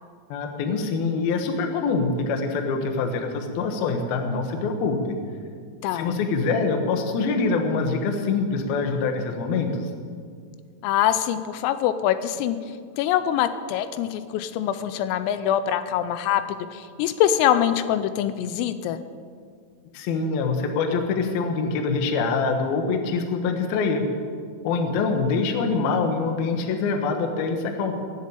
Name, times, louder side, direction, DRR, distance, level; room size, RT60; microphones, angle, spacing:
voice 1, 0.3-5.2 5.9-9.9 19.9-24.1 24.6-27.9, left 4 dB, 65° left, 5 dB, 2.6 m, -25 dB
voice 2, 5.8-6.2 10.8-12.6 13.0-16.4 16.7-19.0, left 10 dB, 90° left, 11 dB, 3.3 m, -24 dB
19.0 x 7.5 x 8.9 m, 2.1 s
omnidirectional pair, 5.9 m